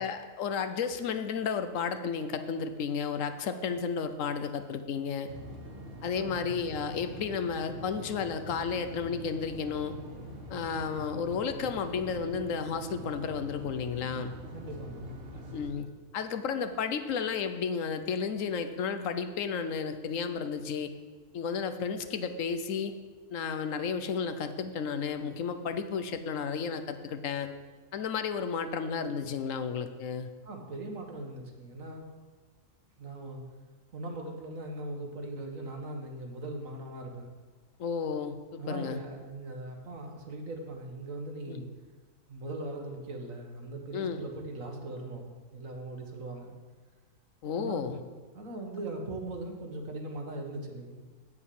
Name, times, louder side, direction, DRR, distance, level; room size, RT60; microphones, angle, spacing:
voice 1, 0.0-5.3 6.0-10.0 10.5-14.3 15.5-15.9 16.1-20.9 21.3-22.9 23.3-27.5 27.9-30.3 37.8-39.0 41.5-41.6 43.9-44.3 47.4-48.0, left 6 dB, 70° left, 9 dB, 1.1 m, -32 dB
sound 1, 5.3-15.7, equal, 45° right, 1.6 m, -44 dB
voice 2, 6.2-6.6 14.5-15.2 30.4-32.1 33.0-33.4 33.9-37.3 38.6-41.7 42.3-46.5 47.5-48.0 48.3-51.1, right 2 dB, 70° right, 2 dB, 1.8 m, -40 dB
7.7 x 6.9 x 8.3 m, 1.4 s
omnidirectional pair, 1.4 m